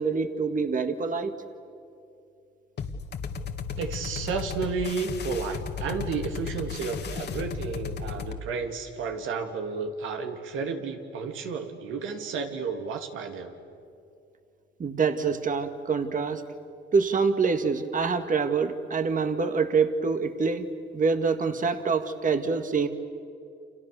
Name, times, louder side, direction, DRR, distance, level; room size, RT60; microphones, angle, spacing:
voice 1, 0.0-1.3 14.8-16.4 16.9-20.7 20.9-22.9, right 5 dB, 40° right, 8 dB, 1.8 m, -25 dB
sound 1, 2.8-8.4, left 5 dB, 55° left, 2.0 m, -34 dB
voice 2, 3.8-13.5, right 5 dB, 85° right, 5 dB, 2.8 m, -32 dB
30.0 x 27.5 x 6.9 m, 2.6 s
cardioid pair, 90°, 20 cm